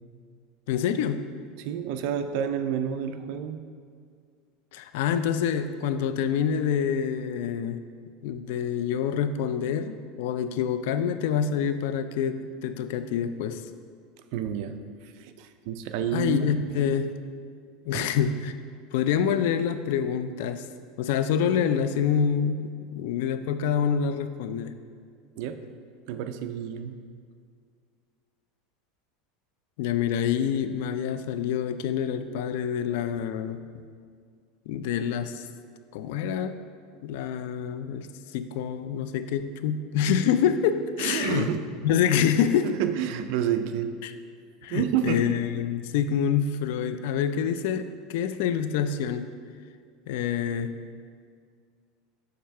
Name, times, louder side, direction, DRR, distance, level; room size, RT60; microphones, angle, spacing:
voice 1, 0.7-1.2 4.7-7.8 8.2-13.6 16.1-17.2 17.8-18.5 18.9-20.7 21.0-24.7 29.8-33.6 34.7-35.5 35.9-36.5 37.0-38.1 38.3-41.5 41.8-42.7 44.0-44.1 44.6-49.3 50.1-50.7, left 8 dB, 70° left, 11 dB, 0.4 m, -26 dB
voice 2, 1.6-3.6 14.3-16.5 17.9-18.1 25.4-25.6 26.1-26.9 41.0-41.6 42.6-43.9 44.7-45.2, right 9 dB, 60° right, 9 dB, 0.4 m, -29 dB
6.5 x 3.4 x 5.5 m, 2.1 s
supercardioid pair, 145°, 0 cm